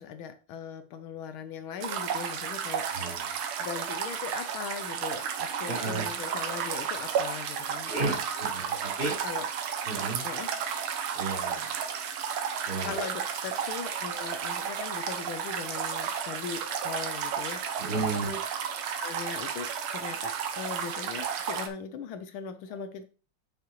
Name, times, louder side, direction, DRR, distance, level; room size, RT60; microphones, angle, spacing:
voice 1, 0.0-3.1 3.6-8.2 9.0-9.5 10.2-10.6 12.8-17.8 18.3-18.4 19.0-23.0, left 6 dB, 75° left, 1.5 m, -39 dB
sound 1, 1.8-21.7, right 7 dB, 75° right, 1.7 m, -33 dB
voice 2, 2.9-3.3 5.6-6.0 7.9-9.1 9.9-10.3 11.1-11.7 12.7-13.0 17.8-18.3, right 3 dB, 35° right, 4.1 m, -33 dB
8.3 x 6.6 x 3.0 m
omnidirectional pair, 2.4 m